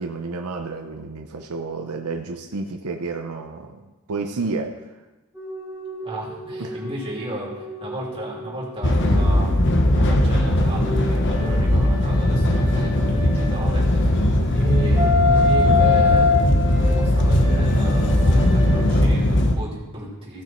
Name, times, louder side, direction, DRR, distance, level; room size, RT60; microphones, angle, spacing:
voice 1, 0.0-4.8 6.6-6.8, right 3 dB, 80° right, 4 dB, 0.7 m, -30 dB
sound 1, 5.4-9.4 10.5-14.0 14.5-18.8, left 4 dB, 10° right, 2.1 m, -26 dB
voice 2, 6.0-14.1 14.5-20.4, right 1 dB, 25° right, -5 dB, 3.0 m, -34 dB
sound 2, 8.8-19.5, left 1 dB, 55° left, 1.0 m, -19 dB
15.5 x 6.1 x 4.4 m, 1.1 s
head